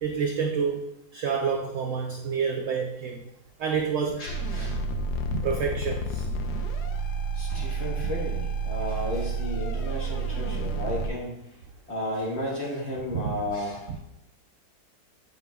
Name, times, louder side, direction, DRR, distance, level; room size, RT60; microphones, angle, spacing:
voice 1, 0.0-3.2 3.6-4.3 5.3-6.3 7.6-7.7 13.1-13.3 13.9-14.0, right 6 dB, 75° right, 2 dB, 0.7 m, -28 dB
voice 2, 4.2-4.8 7.3-11.4 11.9-14.0, left 1 dB, 40° left, -3 dB, 1.5 m, -33 dB
sound 1, 4.3-11.1, right 3 dB, 75° left, 1.0 m, -30 dB
8.0 x 5.5 x 2.3 m, 0.86 s
omnidirectional pair, 1.9 m